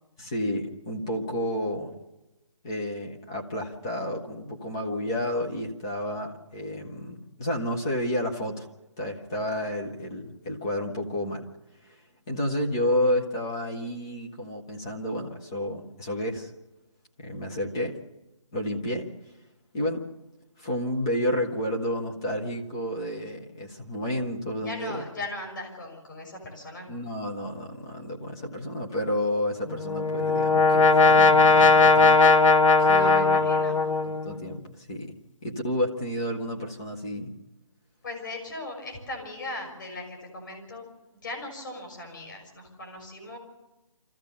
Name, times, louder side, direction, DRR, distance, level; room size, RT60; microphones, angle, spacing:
voice 1, 0.2-1.9 2.6-8.7 9.0-11.5 11.9-12.0 12.3-16.5 17.2-18.0 18.5-19.1 19.7-20.0 20.6-25.0 26.9-32.3 32.8-33.4 34.0-35.1 35.4-37.3, left 1 dB, 5° left, 2 dB, 0.6 m, -30 dB
voice 2, 24.6-26.9 32.9-33.8 38.0-40.9 41.2-43.4, left 2 dB, 35° left, 3 dB, 6.2 m, -38 dB
Brass instrument, 29.7-34.5, left 3 dB, 65° left, 1.1 m, -19 dB
26.0 x 14.5 x 6.9 m, 1.0 s
hypercardioid pair, 175°, 17 cm